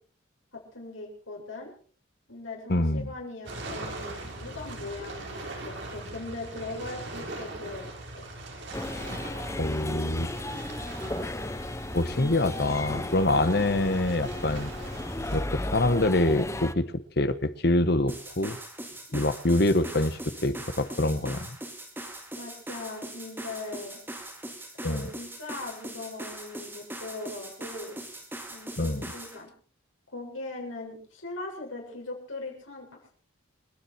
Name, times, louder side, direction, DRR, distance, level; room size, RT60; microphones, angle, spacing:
voice 1, 0.5-1.7 2.3-7.9 8.1-8.2 22.4-24.0 24.8-28.0 28.5-29.5 30.1-33.1, left 2 dB, 80° left, -1 dB, 7.8 m, -40 dB
voice 2, 2.7-3.1 9.6-10.3 11.9-14.7 15.3-16.8 17.2-18.6 19.1-21.6 24.8-25.1 28.8-29.0, left 1 dB, 50° left, 12 dB, 1.2 m, -25 dB
sound 1, 3.4-15.4, right 2 dB, 60° right, 4.4 m, -41 dB
sound 2, 8.7-16.7, left 1 dB, 15° left, 0.7 m, -35 dB
sound 3, 18.1-29.4, right 1 dB, 10° right, 3.7 m, -41 dB
29.0 x 10.0 x 4.6 m, 0.43 s
head